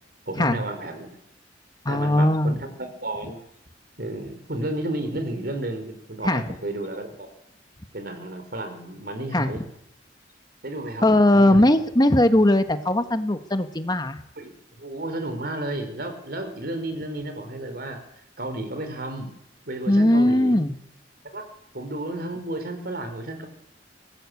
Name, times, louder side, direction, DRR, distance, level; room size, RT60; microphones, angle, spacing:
voice 1, 0.3-1.2 1.9-3.4 4.0-7.3 7.9-9.6 10.6-11.0 11.3-11.7 14.4-14.5 14.8-18.0 18.4-19.4 19.7-20.6 21.3-21.5 21.7-23.5, right 1 dB, 55° right, 8 dB, 4.6 m, -32 dB
voice 2, 1.8-2.6 6.2-6.4 9.3-9.6 11.0-14.2 19.9-20.7, left 1 dB, 20° left, 9 dB, 1.2 m, -19 dB
23.5 x 19.0 x 8.4 m, 0.77 s
head